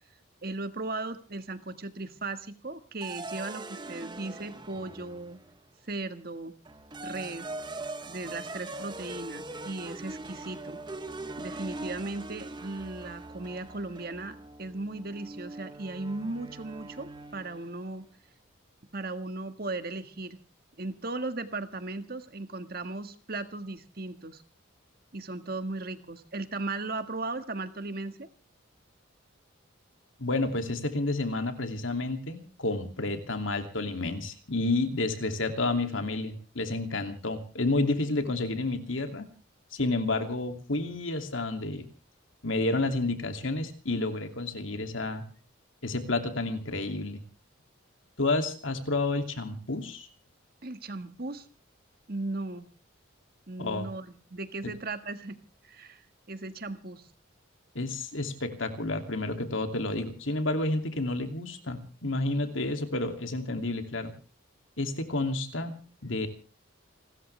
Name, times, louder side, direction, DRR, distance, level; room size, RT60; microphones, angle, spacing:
voice 1, 0.4-5.4 5.9-6.5 7.0-7.5 8.1-10.8 11.4-18.0 18.9-20.4 20.8-24.4 25.1-28.3 50.6-51.4 52.1-52.7 53.5-55.4 55.6-56.0 56.3-57.1, right 2 dB, 50° right, 9 dB, 1.7 m, -37 dB
sound 1, 3.0-5.6 6.7-17.8, right 2 dB, 20° right, 1.1 m, -42 dB
voice 2, 30.2-39.3 39.7-41.9 42.4-45.2 45.8-47.2 48.2-50.1 53.6-53.9 57.7-64.1 64.8-65.7 66.0-66.3, left 2 dB, 75° left, 6 dB, 2.7 m, -30 dB
29.5 x 13.5 x 3.4 m, 0.37 s
head